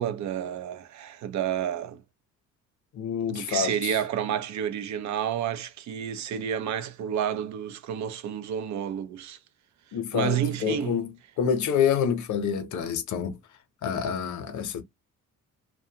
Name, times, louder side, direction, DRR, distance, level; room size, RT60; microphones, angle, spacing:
voice 1, 0.0-2.0 3.3-9.4 10.1-11.0, right 9 dB, 70° right, 0.5 m, -30 dB
voice 2, 2.9-4.0 9.9-13.4 13.8-14.8, left 7 dB, 75° left, 0.8 m, -27 dB
2.5 x 2.2 x 2.8 m
cardioid pair, 90°, 30 cm